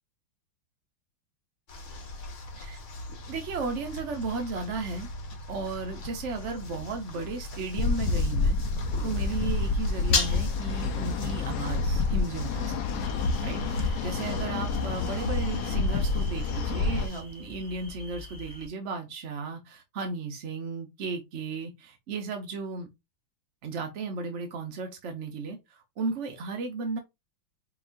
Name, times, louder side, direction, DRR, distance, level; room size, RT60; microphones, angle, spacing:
sound 1, 1.7-17.2, left 3 dB, 45° left, 1.1 m, -38 dB
voice 1, 3.3-5.1 5.5-8.6 9.0-13.2 13.4-22.9 23.6-27.0, right 4 dB, 70° right, 0.6 m, -35 dB
sound 2, 7.8-17.1, left 3 dB, 70° left, 1.0 m, -28 dB
sound 3, 13.0-18.7, left 2 dB, 5° right, 0.4 m, -46 dB
5.0 x 2.9 x 2.5 m
omnidirectional pair, 2.2 m